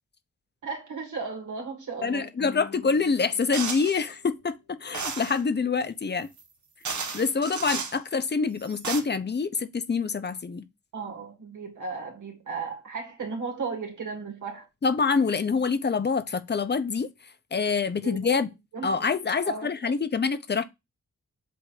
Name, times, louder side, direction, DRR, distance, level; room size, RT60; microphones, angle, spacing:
voice 1, 0.6-2.3 10.9-14.7 18.0-18.5 18.7-19.1 19.4-19.9, right 4 dB, 90° right, 2.0 m, -35 dB
voice 2, 2.0-6.3 7.1-10.6 14.8-17.1 17.5-18.5 18.8-20.6, left 5 dB, 35° left, 0.7 m, -26 dB
sound 1, 2.4-4.9, left 6 dB, 85° left, 2.5 m, -48 dB
sound 2, 3.5-4.0 4.9-5.4 6.4-6.5 6.8-8.0 8.6-9.0, right 5 dB, 75° right, 1.3 m, -33 dB
7.8 x 2.6 x 4.8 m
wide cardioid pair, 115°, 30 cm